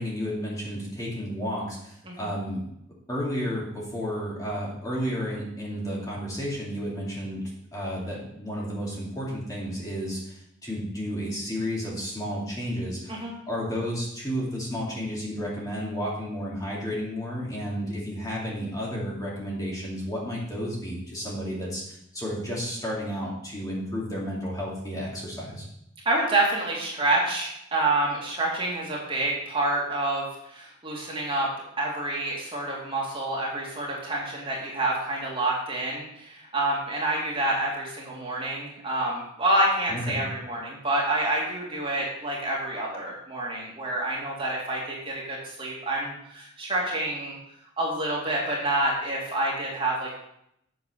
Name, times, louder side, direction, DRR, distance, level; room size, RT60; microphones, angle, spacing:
voice 1, 0.0-2.6 3.1-7.4 7.7-13.2 13.5-25.7 39.9-40.2, equal, 15° left, -5 dB, 2.4 m, -32 dB
voice 2, 26.0-31.5 31.8-47.4 47.8-50.2, right 2 dB, 25° right, -3 dB, 2.3 m, -28 dB
7.8 x 7.1 x 5.5 m, 0.76 s
head